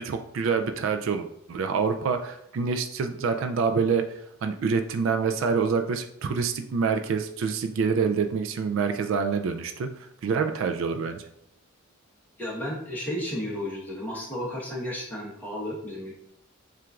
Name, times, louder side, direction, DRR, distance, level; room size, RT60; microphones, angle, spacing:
voice 1, 0.0-11.3, right 5 dB, 65° right, 7 dB, 0.3 m, -27 dB
voice 2, 12.4-16.1, left 1 dB, 10° left, -5 dB, 1.0 m, -33 dB
7.4 x 2.5 x 2.3 m, 0.73 s
head